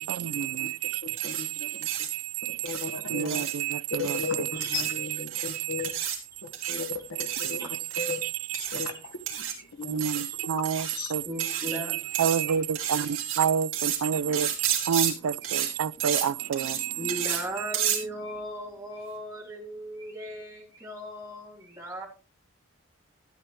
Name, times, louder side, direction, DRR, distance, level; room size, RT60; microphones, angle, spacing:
voice 1, 0.0-5.1 5.4-5.9 6.6-6.7 7.9-8.6 9.9-11.2 11.7-11.8 12.1-17.2, right 8 dB, 85° right, 0.4 m, -29 dB
voice 2, 1.0-1.9 2.6-3.4 3.9-5.9 6.4-7.6 8.0-8.2 8.5-9.4 9.7-10.0 10.9-11.1, left 5 dB, 80° left, 1.3 m, -36 dB
sound 1, 1.2-1.4 1.8-2.1 2.7-2.8 3.2-3.5 4.0-4.3 4.6-4.9 5.3-5.6 5.8-6.2 6.5-6.9 7.2-7.5 7.9-8.2 8.5-8.9 9.3-9.5 10.0-10.3 10.6-11.0 11.4-11.8 12.1-12.4 12.7-13.4 13.7-14.0 14.3-15.1 15.4-15.7 16.0-16.2 16.5-16.8 17.1-17.4 17.7-18.0, right 9 dB, 65° right, 2.7 m, -31 dB
voice 3, 4.5-5.0 5.4-5.5 7.6-7.7 8.5-8.6 8.9-9.0 9.5-9.7 10.2-10.4 11.2-12.1 12.4-13.1 14.0-14.8 15.6-15.7 16.0-22.0, right 1 dB, 15° right, 2.5 m, -39 dB
13.0 x 8.8 x 3.1 m
head